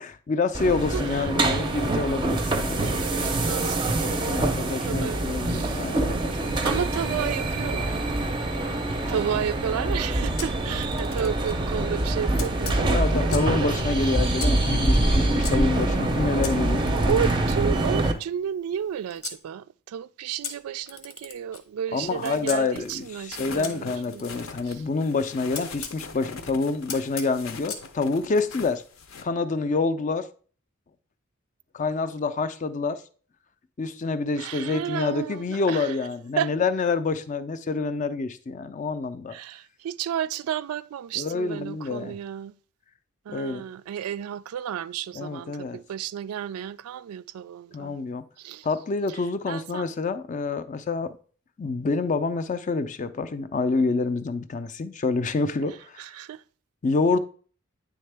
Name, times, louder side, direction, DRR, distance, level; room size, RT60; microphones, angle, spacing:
voice 1, 0.0-2.8 3.6-3.8 4.1-6.2 12.9-16.8 21.9-28.8 29.2-30.3 31.7-33.0 33.8-39.3 41.2-42.2 43.3-43.6 45.1-45.8 47.7-48.2 48.6-51.2 51.6-56.1 56.8-57.2, left 3 dB, 35° left, 0.4 m, -27 dB
sound 1, 0.5-18.1, right 2 dB, 20° right, 0.5 m, -25 dB
voice 2, 0.9-1.3 2.5-6.2 6.6-8.3 8.6-13.7 14.0-14.2 16.9-24.3 24.7-24.8 34.4-35.9 36.4-36.5 39.3-42.5 43.3-48.0 48.4-48.7 49.5-49.9 56.0-56.4, right 9 dB, 85° right, 0.3 m, -32 dB
Camera, 10.4-11.6 12.4-13.6 14.4-15.5 16.4-19.4 20.4-22.6 23.6-26.0 26.9-27.9, left 6 dB, 85° left, 1.1 m, -40 dB
sound 2, 21.9-29.2, left 4 dB, 70° left, 0.6 m, -42 dB
9.3 x 3.6 x 3.3 m
head